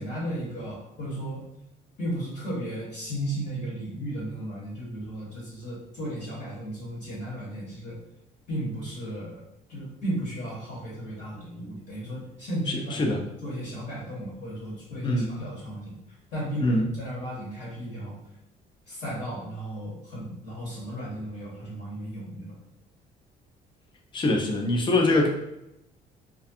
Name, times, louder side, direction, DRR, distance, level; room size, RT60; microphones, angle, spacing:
voice 1, 0.0-1.5 2.0-8.0 8.5-9.4 9.7-13.1 13.4-16.0 16.3-18.2 18.9-22.6, right 1 dB, 50° left, -6 dB, 1.1 m, -35 dB
voice 2, 24.1-25.3, left 2 dB, 30° left, 1 dB, 0.5 m, -23 dB
2.4 x 2.3 x 2.6 m, 0.84 s
cardioid pair, 110°, 17 cm